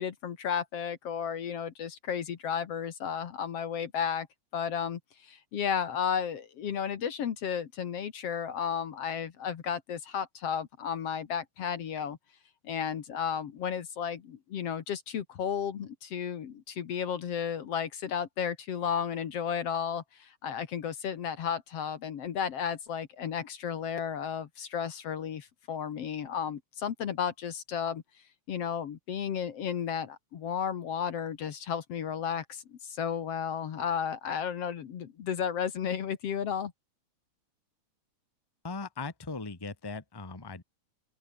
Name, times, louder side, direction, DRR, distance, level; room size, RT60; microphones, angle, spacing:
voice 1, 0.0-4.3 4.5-12.2 12.6-28.0 28.5-36.7, left 8 dB, 60° left, 2.4 m, -33 dB
voice 2, 38.6-40.6, left 3 dB, 10° left, 1.5 m, -39 dB
open air
omnidirectional pair, 3.3 m